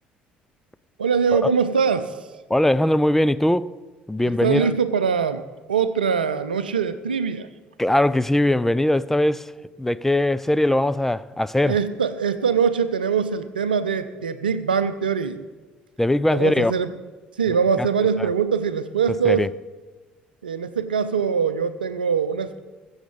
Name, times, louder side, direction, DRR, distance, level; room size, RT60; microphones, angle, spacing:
voice 1, 1.0-2.1 4.2-5.4 5.7-7.5 11.6-15.5 16.3-16.9 17.4-19.5 20.4-22.6, right 6 dB, 80° right, 0.6 m, -23 dB
voice 2, 2.5-3.7 4.1-4.8 7.8-9.5 9.8-11.8 16.0-16.7 17.8-17.9 19.2-19.5, left 1 dB, 5° left, 0.4 m, -20 dB
20.5 x 7.9 x 5.3 m
figure-of-eight pair, 55°, 5 cm